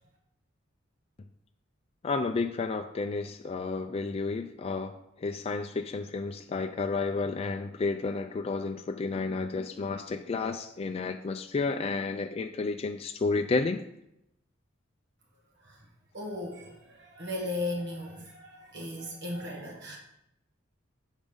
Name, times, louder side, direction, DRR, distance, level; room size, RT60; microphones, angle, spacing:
voice 1, 2.0-13.8, left 3 dB, 30° left, 6 dB, 0.3 m, -31 dB
voice 2, 16.1-20.0, left 2 dB, 60° right, -1 dB, 1.5 m, -36 dB
7.2 x 5.1 x 5.4 m, 0.82 s
head